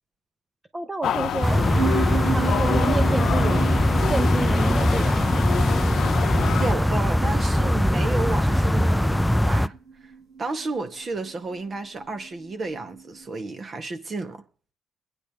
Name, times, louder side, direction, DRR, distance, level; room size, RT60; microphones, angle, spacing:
voice 1, 0.7-1.6 2.3-3.7 4.1-5.2, right 2 dB, 20° right, 0.9 m, -29 dB
sound 1, 1.0-6.7, left 9 dB, 70° left, 0.7 m, -28 dB
sound 2, 1.4-9.7, equal, 5° left, 0.5 m, -21 dB
sound 3, 1.7-13.2, right 5 dB, 90° right, 7.0 m, -34 dB
voice 2, 6.2-9.7 10.4-14.4, right 3 dB, 40° right, 2.1 m, -32 dB
22.5 x 9.9 x 3.4 m
cardioid pair, 90°, 0 cm